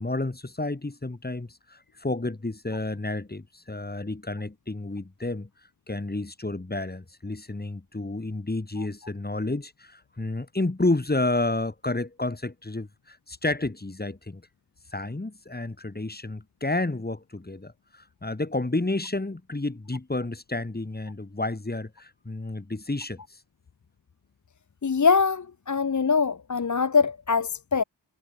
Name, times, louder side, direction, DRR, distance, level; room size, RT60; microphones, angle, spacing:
voice 1, 0.0-5.5 5.9-14.4 14.9-23.4, left 2 dB, 20° left, 1.6 m, -30 dB
voice 2, 24.8-27.8, left 5 dB, 40° left, 0.7 m, -23 dB
wide cardioid pair, 85°, 46 cm